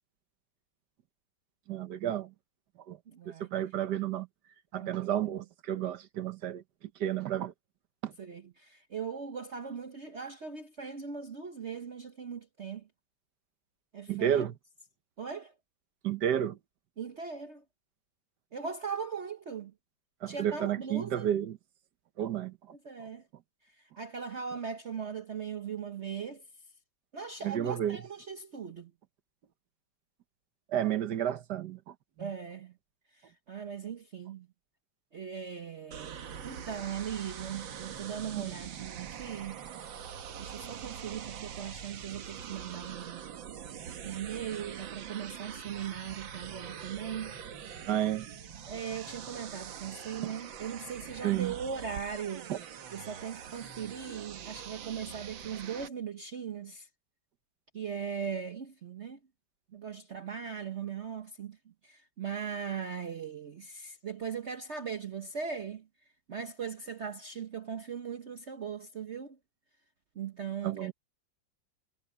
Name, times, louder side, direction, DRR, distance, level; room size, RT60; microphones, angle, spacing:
voice 1, 1.7-2.3 2.9-3.0 3.2-4.3 4.7-6.6 7.0-7.5 8.0-8.1 14.1-14.5 16.0-16.6 20.2-21.6 22.2-22.5 27.4-28.0 30.7-32.3 38.4-38.6 47.9-48.3 50.2-50.3 51.2-51.5 52.5-52.6 70.6-70.9, right 10 dB, 65° right, 1.5 m, -31 dB
voice 2, 3.1-3.5 4.8-5.0 8.2-12.8 13.9-14.5 15.2-15.5 17.0-17.6 18.5-19.7 20.3-21.3 22.8-23.2 24.0-26.4 27.1-28.9 32.2-32.7 33.2-34.5 35.1-39.6 40.4-43.2 44.0-47.3 48.7-52.5 52.9-56.9 57.7-59.2 59.7-61.6 61.8-65.9 66.3-69.4 70.1-70.9, right 7 dB, 45° right, 1.1 m, -39 dB
sound 1, 35.9-55.9, right 8 dB, 80° right, 2.0 m, -44 dB
omnidirectional pair, 2.1 m